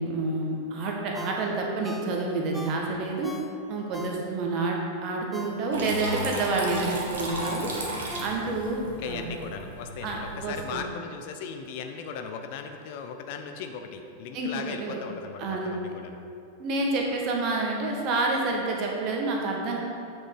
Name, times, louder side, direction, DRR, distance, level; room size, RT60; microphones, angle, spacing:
voice 1, 0.0-3.3 3.7-7.7 8.2-9.3 10.0-10.8 14.3-15.0 15.4-15.8 16.6-19.8, right 2 dB, 40° right, 0 dB, 1.5 m, -28 dB
Ringtone, 1.1-4.6 5.0-8.8 9.2-9.3, left 1 dB, ahead, 0.7 m, -42 dB
Water tap faucet / Trickle dribble, 5.7-10.7, right 2 dB, 65° right, 1.4 m, -35 dB
voice 2, 8.9-16.2, left 6 dB, 50° left, 6 dB, 0.6 m, -38 dB
8.8 x 5.4 x 5.4 m, 2.7 s
figure-of-eight pair, 90°, 0 cm